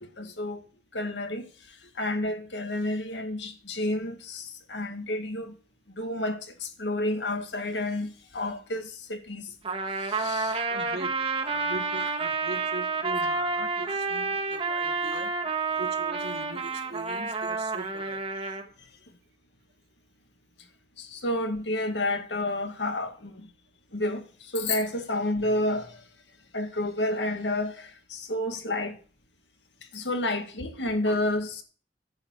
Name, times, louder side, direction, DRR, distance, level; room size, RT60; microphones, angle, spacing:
voice 1, 0.0-0.6 0.9-1.4 2.0-5.5 6.0-9.5 10.0-10.7 21.0-23.5 23.9-26.0 26.5-29.0 29.9-31.6, left 1 dB, 85° left, 2.0 m, -30 dB
Trumpet, 9.6-18.6, right 4 dB, 35° right, 1.3 m, -29 dB
voice 2, 10.7-15.3 15.8-18.2, right 2 dB, 65° right, 1.4 m, -40 dB
10.5 x 7.0 x 8.0 m
head